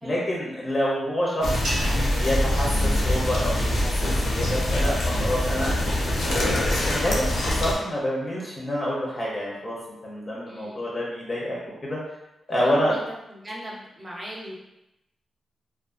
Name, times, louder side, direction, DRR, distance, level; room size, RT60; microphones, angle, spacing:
voice 1, 0.0-5.8 6.2-9.8 10.0-12.0 12.5-12.9, equal, 30° left, -5 dB, 0.6 m, -28 dB
sound 1, 1.4-7.7, left 1 dB, 75° left, 0.5 m, -24 dB
sound 2, 1.6-4.1, right 1 dB, 80° right, 0.6 m, -37 dB
voice 2, 10.5-10.9 12.6-13.0 13.3-14.5, equal, 25° right, -4 dB, 0.6 m, -39 dB
2.4 x 2.3 x 2.4 m, 0.87 s
wide cardioid pair, 115°, 0 cm